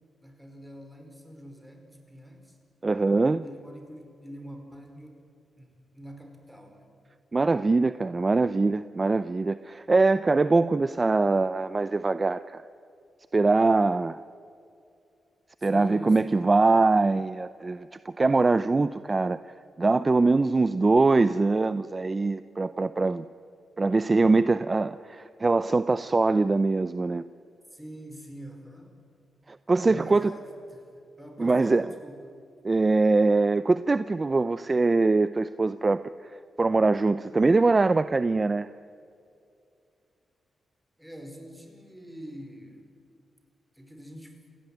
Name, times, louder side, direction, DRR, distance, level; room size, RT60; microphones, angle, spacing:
voice 1, 0.2-2.6 3.4-5.2 5.6-6.9 15.6-16.5 27.7-28.9 29.8-30.9 31.2-32.2 41.0-42.8 43.7-44.3, equal, 5° right, 4 dB, 5.2 m, -45 dB
voice 2, 2.8-3.4 7.3-12.6 13.3-14.2 15.6-19.4 19.8-23.2 23.8-27.2 29.7-30.3 31.4-31.9 32.6-36.1 36.6-38.7, right 3 dB, 30° right, 14 dB, 0.6 m, -23 dB
28.0 x 16.5 x 9.3 m, 2.5 s
cardioid pair, 80°, 0 cm